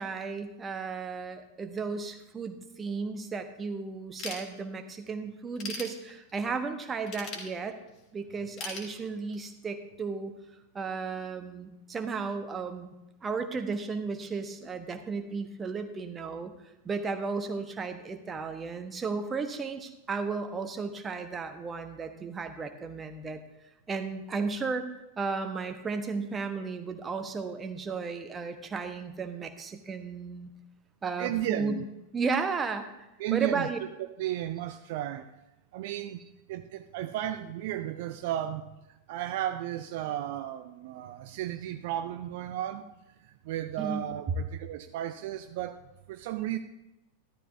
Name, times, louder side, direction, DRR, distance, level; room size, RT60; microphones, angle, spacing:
voice 1, 0.0-7.8 8.1-10.3 10.7-12.9 13.2-16.5 16.8-23.4 23.9-24.9 25.2-30.5 31.0-31.8 32.1-33.0 33.3-33.8 43.8-44.0, right 4 dB, 20° right, 7 dB, 1.2 m, -34 dB
Ratchet pawl / Tools, 4.2-5.0 5.4-6.5 7.1-8.0 8.6-9.6, left 3 dB, 40° left, 3.0 m, -40 dB
voice 2, 31.2-31.8 33.2-33.7 34.2-35.3 35.7-42.9 43.2-46.6, right 12 dB, 50° right, 8 dB, 0.6 m, -34 dB
14.0 x 13.0 x 2.7 m, 0.94 s
figure-of-eight pair, 90°, 0 cm